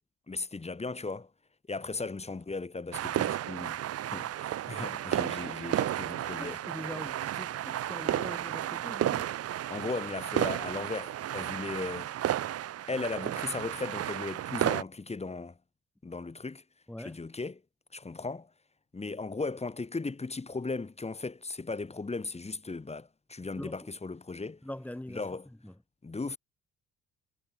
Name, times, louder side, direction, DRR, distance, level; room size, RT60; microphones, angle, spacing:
voice 1, 0.3-1.3 1.7-3.8 4.1-6.6 9.7-12.4 12.9-15.6 16.0-16.6 17.0-17.6 17.9-18.5 18.9-24.6 25.1-25.5 26.0-26.4, left 3 dB, 20° left, 2.2 m, -37 dB
sound 1, 2.9-14.8, right 12 dB, 55° right, 0.7 m, -33 dB
voice 2, 6.4-9.3 16.9-17.2 23.6-23.9 24.6-25.2 25.6-25.7, left 1 dB, 5° left, 2.7 m, -42 dB
cardioid pair, 90°, 30 cm